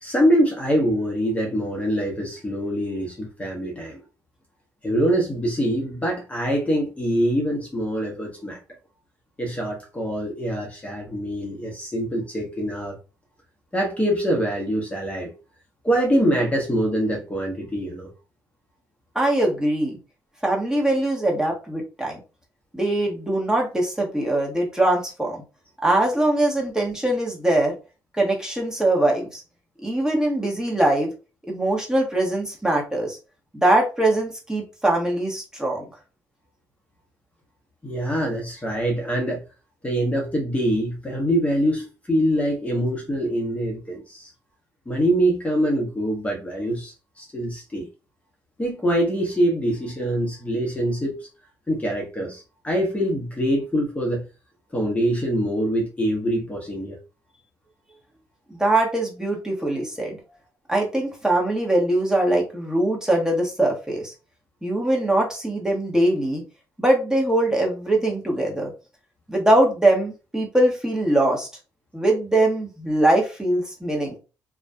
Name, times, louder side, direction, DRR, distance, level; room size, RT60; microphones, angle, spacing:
voice 1, 0.0-4.0 4.8-8.6 9.4-13.0 13.7-15.3 15.8-18.1 37.8-39.4 39.8-44.3 44.9-47.9 48.6-51.3 51.7-54.2 54.7-57.0, equal, 15° left, 0.9 m, -24 dB
voice 2, 19.1-20.0 20.4-22.2 22.7-25.4 25.8-27.7 28.2-29.4 29.8-31.1 31.5-33.2 33.5-35.8 58.6-60.2 60.7-64.1 64.6-66.4 66.8-68.7 69.3-71.5 71.9-74.2, right 1 dB, 5° right, 1.1 m, -22 dB
2.6 x 2.2 x 2.2 m
supercardioid pair, 60°, 8 cm